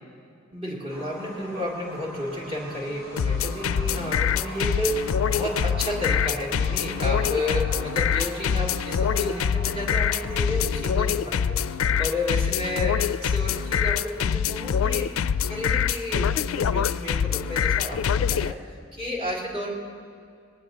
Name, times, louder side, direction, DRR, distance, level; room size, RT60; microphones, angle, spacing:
voice 1, 0.5-18.6 18.9-19.7, left 1 dB, 30° right, -4 dB, 3.1 m, -32 dB
sound 1, 0.9-14.5, equal, 90° right, 3.9 m, -43 dB
sound 2, 3.2-18.5, left 7 dB, 85° left, 0.4 m, -25 dB
20.5 x 19.0 x 2.9 m, 2.4 s
head